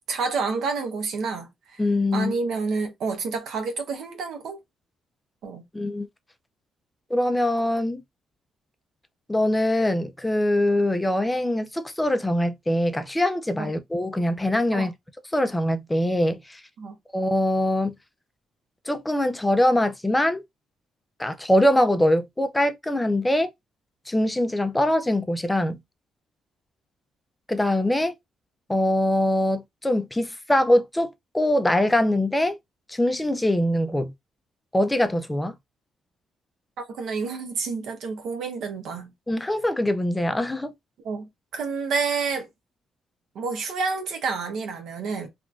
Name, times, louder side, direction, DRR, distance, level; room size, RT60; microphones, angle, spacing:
voice 1, 0.1-1.8 2.1-4.6 5.4-5.6 13.6-13.7 14.7-14.9 16.8-16.9 36.8-39.1 41.0-42.5 43.3-45.3, right 4 dB, 75° right, 0.8 m, -29 dB
voice 2, 1.8-2.3 5.7-6.1 7.1-8.0 9.3-14.9 15.3-16.6 17.1-17.9 18.9-20.4 21.2-23.5 24.1-25.8 27.5-28.1 28.7-32.6 32.9-34.1 34.7-35.6 39.3-40.7, left 1 dB, 10° left, 0.4 m, -23 dB
2.9 x 2.5 x 2.3 m
cardioid pair, 90°, 0 cm